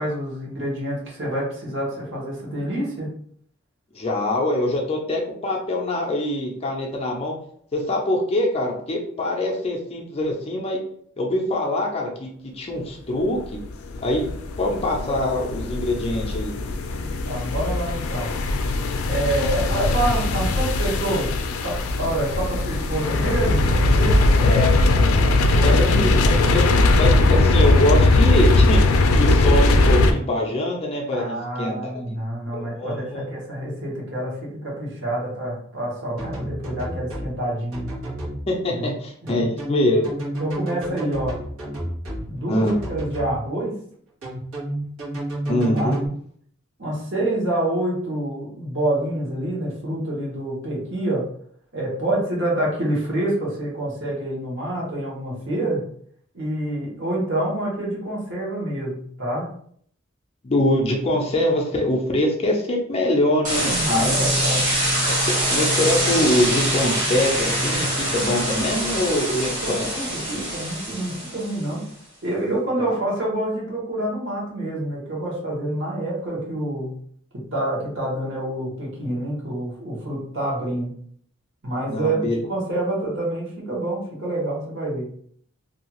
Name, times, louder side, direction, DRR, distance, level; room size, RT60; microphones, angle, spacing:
voice 1, 0.0-3.1 17.3-18.3 19.1-21.3 21.6-24.6 25.6-25.8 31.1-37.9 38.8-38.9 39.2-39.5 40.4-41.4 42.3-43.7 45.7-46.0 46.8-51.3 51.7-55.8 56.3-59.5 63.9-64.7 69.2-69.4 69.6-71.8 72.2-77.0 77.5-80.9 81.6-85.1, right 1 dB, 60° right, -4 dB, 1.1 m, -27 dB
voice 2, 3.9-7.3 7.7-10.8 11.2-12.3 12.5-13.6 14.0-14.3 14.6-16.5 24.4-24.8 25.6-26.6 27.0-28.8 29.2-32.2 32.5-33.3 38.5-40.1 42.5-42.8 45.5-46.1 60.4-64.2 65.1-65.2 65.5-69.9 72.8-73.0 81.9-82.4, left 1 dB, 30° left, 0 dB, 0.5 m, -24 dB
sound 1, 13.6-30.1, left 2 dB, 90° left, 0.4 m, -19 dB
sound 2, 36.2-37.3 37.7-38.4 39.3-42.3 42.7-43.3 44.2-46.1, right 1 dB, 85° right, 1.2 m, -30 dB
sound 3, 63.4-71.7, right 1 dB, 40° right, 1.2 m, -24 dB
2.7 x 2.3 x 2.9 m, 0.62 s
head